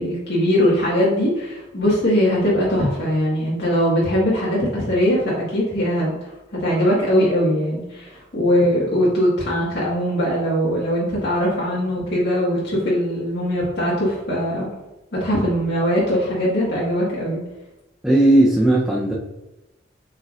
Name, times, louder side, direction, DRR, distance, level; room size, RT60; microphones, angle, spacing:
voice 1, 0.0-6.1 6.6-14.7 15.1-17.4, equal, 65° left, -6 dB, 1.8 m, -21 dB
voice 2, 18.0-19.1, right 1 dB, 5° right, -5 dB, 0.7 m, -16 dB
7.5 x 5.4 x 2.6 m, 0.99 s
head